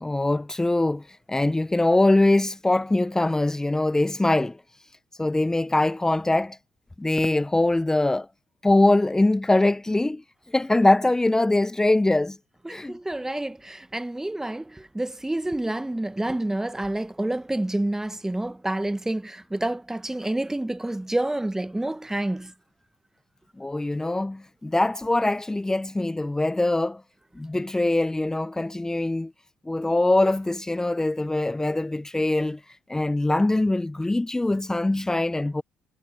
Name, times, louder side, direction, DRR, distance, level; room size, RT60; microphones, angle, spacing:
voice 1, 0.0-4.6 5.2-6.6 7.0-8.3 8.6-10.2 10.5-12.4 12.7-13.0 23.6-27.0 27.4-29.3 29.7-32.6 32.9-35.6, left 2 dB, 10° left, 0.9 m, -22 dB
voice 2, 12.6-22.5, right 1 dB, 10° right, 1.2 m, -28 dB
hypercardioid pair, 55°, 4 cm